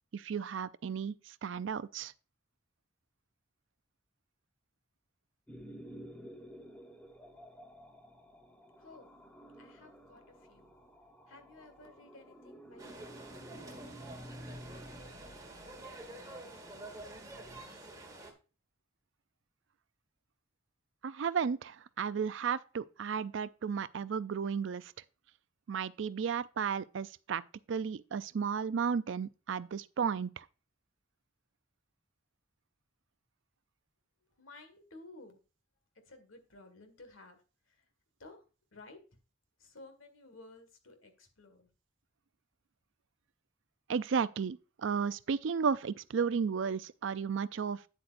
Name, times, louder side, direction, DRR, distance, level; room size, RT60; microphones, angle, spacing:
voice 1, 0.1-2.1 21.0-24.9 25.7-27.4 27.7-30.4 43.9-47.8, right 6 dB, 65° right, 0.4 m, -34 dB
sound 1, 5.5-17.6, equal, 10° left, 1.0 m, -52 dB
voice 2, 8.8-9.1 9.6-10.8 11.3-14.1 14.7-18.0 34.4-35.4 35.9-37.8 38.2-38.5 38.7-39.0 39.6-41.7, left 2 dB, 80° left, 1.8 m, -56 dB
sound 2, 12.8-18.3, right 2 dB, 20° right, 1.5 m, -48 dB
9.2 x 7.9 x 2.5 m
head